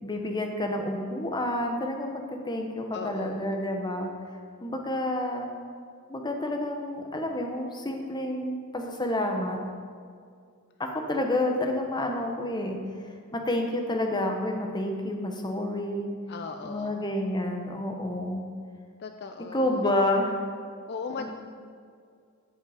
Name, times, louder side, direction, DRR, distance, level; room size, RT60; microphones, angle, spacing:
voice 1, 0.0-4.1 4.6-5.5 6.1-9.6 10.8-12.8 13.3-16.1 16.6-18.4 19.5-20.4 21.2-21.3, left 1 dB, 20° left, 3 dB, 1.1 m, -29 dB
voice 2, 2.9-3.6 16.3-17.1 19.0-19.9 20.9-21.3, left 5 dB, 50° left, 5 dB, 0.5 m, -38 dB
15.0 x 5.5 x 5.1 m, 2.2 s
head